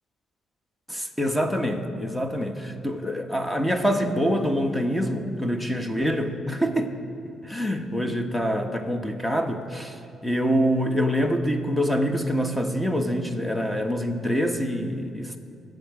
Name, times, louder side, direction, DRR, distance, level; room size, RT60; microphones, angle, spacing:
voice 1, 0.9-6.9 7.4-15.4, equal, 10° left, 5 dB, 1.2 m, -25 dB
22.5 x 7.9 x 4.9 m, 2.7 s
cardioid pair, 90°, 0 cm